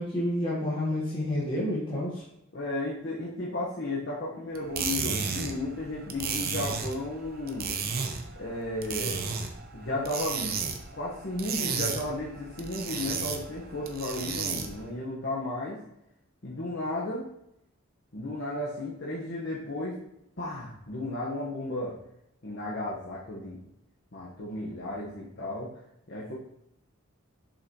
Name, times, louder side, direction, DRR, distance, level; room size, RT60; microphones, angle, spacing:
voice 1, 0.0-2.2, left 1 dB, 25° left, -7 dB, 1.5 m, -29 dB
voice 2, 2.5-7.8 8.3-9.2 9.7-10.6 10.9-15.8 16.4-17.3 18.1-20.0 20.4-22.0 22.4-23.6 24.1-25.7 26.1-26.3, left 1 dB, 55° left, -6 dB, 1.3 m, -34 dB
sound 1, 4.5-14.9, right 5 dB, 45° right, 0.8 m, -34 dB
7.0 x 5.7 x 3.0 m, 0.81 s
head